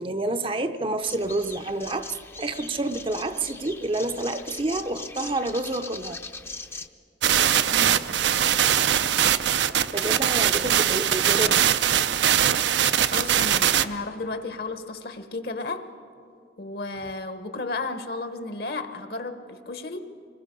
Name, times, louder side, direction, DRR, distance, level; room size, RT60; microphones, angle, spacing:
voice 1, 0.0-2.1 2.4-6.2 9.9-11.6, right 2 dB, 30° right, 0.6 m, -28 dB
sound 1, 1.0-6.9, left 3 dB, 15° left, 0.5 m, -40 dB
sound 2, 7.2-13.9, right 9 dB, 80° right, 0.5 m, -21 dB
voice 2, 7.7-8.1 13.1-15.8 16.6-20.0, left 3 dB, 60° left, 1.1 m, -33 dB
25.0 x 21.0 x 5.3 m
head